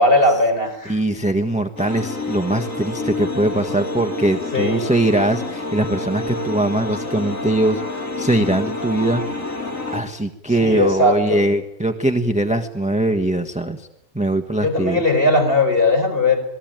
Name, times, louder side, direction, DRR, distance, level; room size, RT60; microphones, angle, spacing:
voice 1, 0.0-1.0 4.5-4.9 10.5-11.4 14.6-16.4, left 2 dB, 35° left, 4 dB, 5.3 m, -18 dB
voice 2, 0.8-9.2 9.9-13.9 14.1-15.0, right 1 dB, 5° right, 7 dB, 1.3 m, -21 dB
sound 1, 1.8-10.0, left 2 dB, 55° left, 3.6 m, -28 dB
27.5 x 20.0 x 9.2 m, 0.79 s
omnidirectional pair, 1.6 m